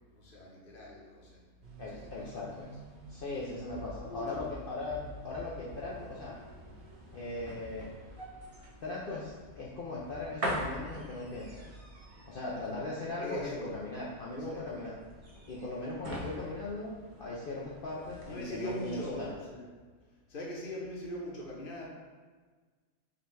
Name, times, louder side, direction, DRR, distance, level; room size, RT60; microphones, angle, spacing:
voice 1, 0.1-1.4 1.8-2.5 4.0-4.4 13.2-13.7 14.5-14.8 18.3-19.6 20.3-21.9, equal, 45° left, -3 dB, 0.9 m, -41 dB
sound 1, 1.6-19.3, right 2 dB, 50° right, 1.0 m, -54 dB
voice 2, 1.8-2.7 3.1-6.4 7.1-7.9 8.8-11.6 12.3-15.0 15.5-19.3, left 2 dB, 80° left, -5 dB, 0.5 m, -39 dB
sound 2, 3.7-17.7 18.0-18.2, equal, 65° right, 0.3 m, -43 dB
4.9 x 2.3 x 4.5 m, 1.4 s
omnidirectional pair, 1.6 m